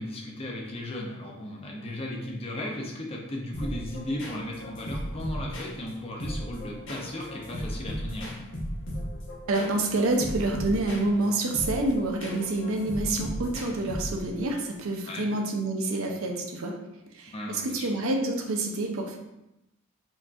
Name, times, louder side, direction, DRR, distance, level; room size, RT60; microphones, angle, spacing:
voice 1, 0.0-8.4 15.1-15.3 17.3-17.9, left 1 dB, 25° left, -1 dB, 0.5 m, -36 dB
sound 1, 3.5-14.4, equal, 55° left, 1.0 m, -36 dB
voice 2, 9.5-16.8 17.1-19.2, right 2 dB, 70° right, 2 dB, 0.6 m, -28 dB
4.4 x 2.8 x 2.3 m, 0.91 s
head